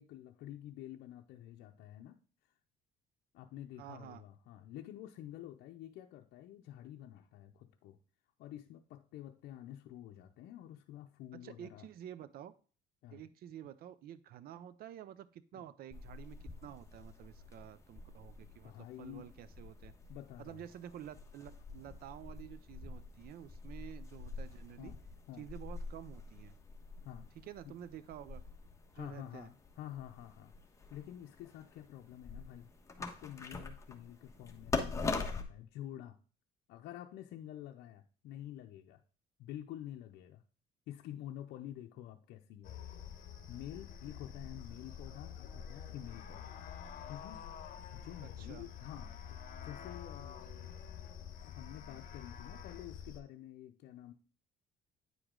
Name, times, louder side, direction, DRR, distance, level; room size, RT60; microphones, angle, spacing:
voice 1, 0.0-2.5 3.3-8.0 8.4-11.9 13.0-13.3 15.5-15.6 18.6-19.3 20.1-20.7 24.8-25.0 25.3-25.5 27.0-27.3 27.6-27.8 28.9-30.5 30.9-32.7 33.0-36.2 36.7-39.0 39.4-40.4 40.9-42.8 43.2-46.7 47.1-47.4 47.8-49.2 49.6-50.7 51.4-54.1, left 12 dB, 80° left, 3 dB, 0.6 m, -49 dB
voice 2, 3.8-4.2 11.3-12.5 13.1-16.4 16.6-18.7 19.0-19.9 20.4-24.9 25.4-26.5 27.4-28.4 28.9-29.5 48.4-48.7, right 11 dB, 65° right, 15 dB, 0.6 m, -50 dB
sound 1, 15.9-35.4, left 4 dB, 15° left, 1.2 m, -45 dB
sound 2, 42.6-53.2, left 8 dB, 55° left, 1.1 m, -48 dB
9.4 x 4.9 x 3.7 m, 0.39 s
cardioid pair, 110°, 17 cm